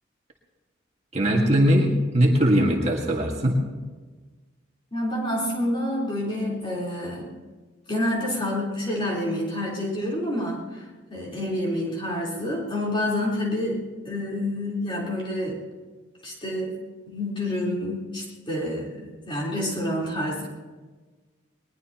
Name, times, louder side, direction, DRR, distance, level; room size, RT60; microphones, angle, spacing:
voice 1, 1.1-3.6, equal, 35° right, 0 dB, 1.9 m, -20 dB
voice 2, 4.9-7.3 7.9-15.6 16.2-16.8 17.1-20.5, left 1 dB, 25° left, -4 dB, 4.0 m, -28 dB
21.5 x 20.5 x 3.0 m, 1.3 s
head